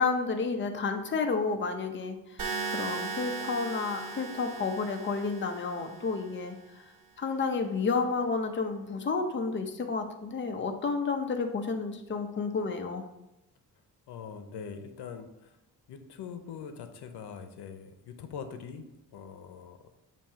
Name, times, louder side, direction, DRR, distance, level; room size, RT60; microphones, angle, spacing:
voice 1, 0.0-2.4 2.7-6.6 7.2-13.0, left 4 dB, 30° left, 5 dB, 0.7 m, -31 dB
sound 1, 2.4-6.4, right 4 dB, 60° right, 1.5 m, -37 dB
voice 2, 14.1-15.3 15.9-18.9 19.1-19.8, left 6 dB, 90° left, 8 dB, 0.7 m, -42 dB
7.2 x 2.8 x 5.6 m, 0.91 s
cardioid pair, 120°, 39 cm